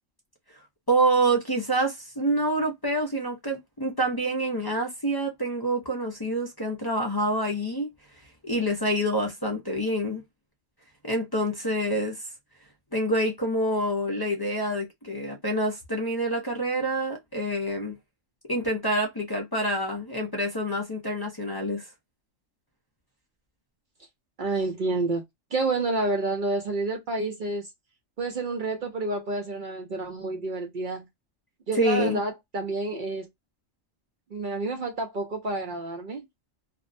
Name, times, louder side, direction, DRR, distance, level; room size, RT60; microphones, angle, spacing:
voice 1, 0.9-7.9 8.4-10.2 11.0-12.2 12.9-17.9 18.5-21.9 31.8-32.2, right 1 dB, 35° left, 0.4 m, -27 dB
voice 2, 24.4-25.2 25.5-27.7 28.2-31.0 31.7-33.3 34.3-36.2, right 3 dB, 55° right, 0.6 m, -29 dB
2.5 x 2.0 x 2.5 m
omnidirectional pair, 1.3 m